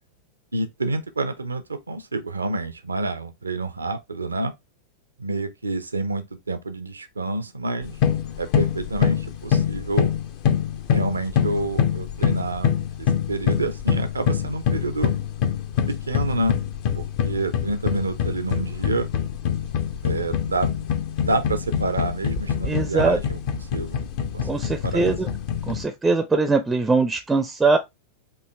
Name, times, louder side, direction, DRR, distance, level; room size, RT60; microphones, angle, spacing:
voice 1, 0.5-4.5 5.2-8.0 8.4-10.1 10.9-12.7 13.0-15.2 15.9-16.6 16.9-19.1 20.0-20.7 21.2-23.4 23.7-24.0 24.3-24.5 24.8-25.1, right 2 dB, 75° right, 0.5 m, -28 dB
sound 1, 7.8-25.9, left 8 dB, 45° left, 0.6 m, -25 dB
voice 2, 22.7-23.2 24.4-25.3 25.7-27.8, right 3 dB, 10° right, 0.5 m, -21 dB
4.6 x 2.7 x 3.1 m
figure-of-eight pair, 90°, 0 cm